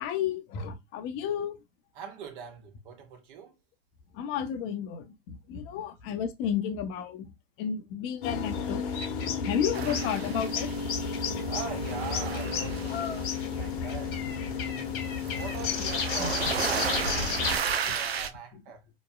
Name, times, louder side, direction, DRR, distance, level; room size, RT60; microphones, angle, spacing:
voice 1, 0.0-1.6 4.1-7.3 7.6-8.9 9.5-10.7 16.2-16.3, left 8 dB, 45° left, 0.8 m, -32 dB
voice 2, 1.9-3.6 11.5-14.9 15.3-18.9, right 6 dB, 55° right, 1.2 m, -43 dB
sound 1, 8.2-17.6, left 6 dB, 60° left, 1.1 m, -32 dB
sound 2, 9.7-11.4 11.6-18.3, right 7 dB, 90° right, 0.5 m, -34 dB
4.4 x 3.1 x 2.2 m
hypercardioid pair, 90°, 30 cm